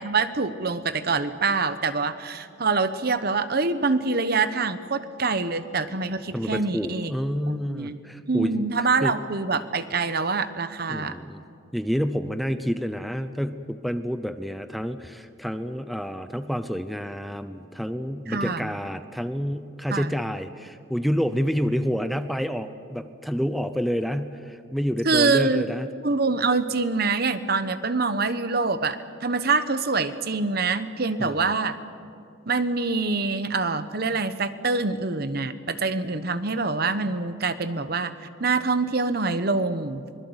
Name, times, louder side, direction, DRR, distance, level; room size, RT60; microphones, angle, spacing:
voice 1, 0.0-7.1 7.5-7.9 8.3-11.1 18.3-18.7 19.9-20.1 25.0-25.6 26.0-31.8 32.5-38.1 38.4-40.0, right 4 dB, 50° right, 12 dB, 1.0 m, -25 dB
voice 2, 6.3-8.6 9.0-9.2 10.9-11.4 11.7-25.9 31.2-31.5, equal, ahead, 9 dB, 0.7 m, -28 dB
25.0 x 21.0 x 8.1 m, 2.5 s
head